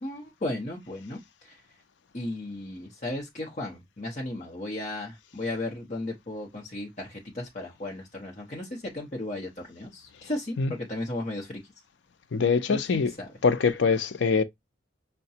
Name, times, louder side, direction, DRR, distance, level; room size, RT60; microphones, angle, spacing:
voice 1, 0.0-1.6 2.1-11.6 12.7-13.3, left 1 dB, 40° left, 0.9 m, -35 dB
voice 2, 12.3-13.1 13.4-14.4, left 5 dB, 75° left, 0.5 m, -23 dB
5.7 x 2.2 x 2.7 m
head